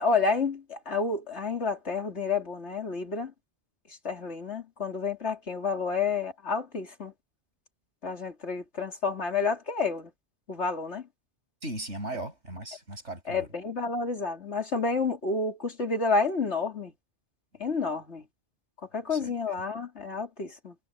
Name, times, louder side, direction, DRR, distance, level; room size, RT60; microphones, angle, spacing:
voice 1, 0.0-3.3 3.9-7.1 8.0-10.1 10.5-11.1 13.3-16.9 17.6-18.2 18.9-20.7, left 4 dB, 70° left, 3.1 m, -30 dB
voice 2, 11.6-13.5 19.1-19.3, right 1 dB, 75° right, 7.3 m, -37 dB
omnidirectional pair, 1.2 m